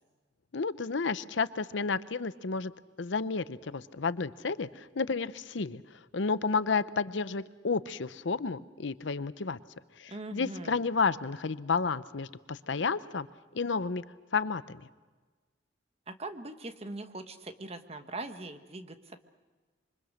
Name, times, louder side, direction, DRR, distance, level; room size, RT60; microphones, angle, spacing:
voice 1, 0.5-2.7 3.0-5.8 6.1-9.6 10.0-13.3 13.5-14.0 14.3-14.8, left 4 dB, 70° left, 15 dB, 0.7 m, -31 dB
voice 2, 10.1-10.8 16.1-19.2, right 2 dB, 35° right, 8 dB, 1.3 m, -41 dB
26.5 x 24.5 x 6.5 m, 1.3 s
head